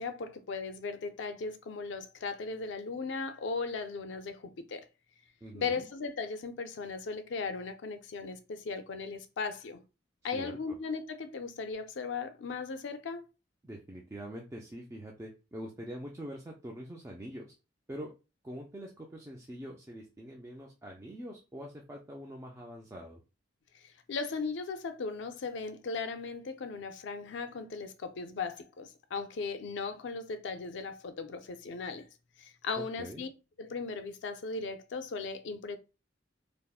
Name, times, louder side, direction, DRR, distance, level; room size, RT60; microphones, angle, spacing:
voice 1, 0.0-4.9 5.5-9.8 10.2-13.2 23.8-32.1 32.4-33.3 33.6-35.8, left 4 dB, 70° left, 0.4 m, -37 dB
voice 2, 5.4-5.9 10.3-10.8 13.6-17.5 17.9-18.1 18.4-23.2 32.8-33.3, equal, 15° right, 0.3 m, -44 dB
3.4 x 2.0 x 2.3 m
head